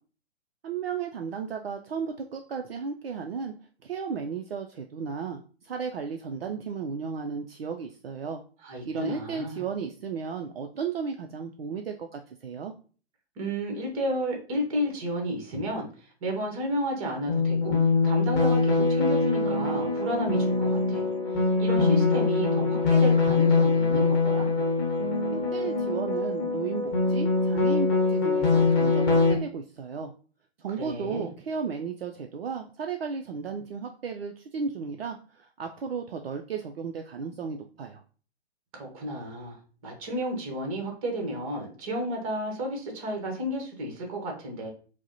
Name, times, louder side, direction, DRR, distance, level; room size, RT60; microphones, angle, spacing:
voice 1, 0.6-3.5 3.8-8.4 8.9-12.7 25.3-30.1 30.6-38.0, right 6 dB, 65° right, 4 dB, 0.4 m, -34 dB
voice 2, 8.6-9.6 13.4-17.8 18.0-24.5 30.8-31.3 38.7-44.7, equal, 35° right, 2 dB, 1.0 m, -32 dB
sound 1, 17.3-29.3, left 3 dB, 25° left, 1.0 m, -23 dB
4.5 x 2.1 x 2.7 m, 0.39 s
figure-of-eight pair, 115°, 32 cm